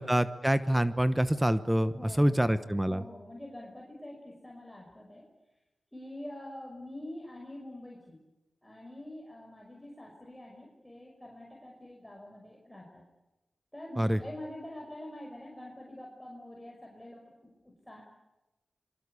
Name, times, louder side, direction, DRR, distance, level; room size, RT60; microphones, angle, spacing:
voice 1, 0.0-3.0 14.0-14.2, right 1 dB, 10° right, 13 dB, 1.1 m, -26 dB
voice 2, 1.9-2.5 2.9-5.3 5.9-8.2 8.6-13.0 13.7-18.0, left 1 dB, 10° left, -1 dB, 5.7 m, -46 dB
25.5 x 23.5 x 8.4 m, 1.0 s
cardioid pair, 60°, 0 cm